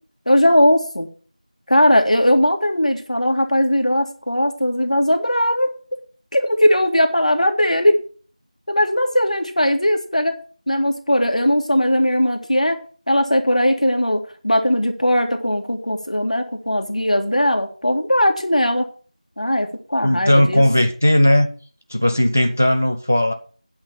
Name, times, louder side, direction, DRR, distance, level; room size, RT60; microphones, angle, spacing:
voice 1, 0.3-1.1 1.7-5.7 6.3-8.0 8.7-10.3 10.7-12.8 13.1-18.9 19.4-20.6, left 1 dB, 65° left, 2.1 m, -18 dB
voice 2, 20.0-21.5 21.9-23.3, left 1 dB, 20° right, 0.5 m, -16 dB
9.6 x 5.7 x 8.0 m
figure-of-eight pair, 180°, 4 cm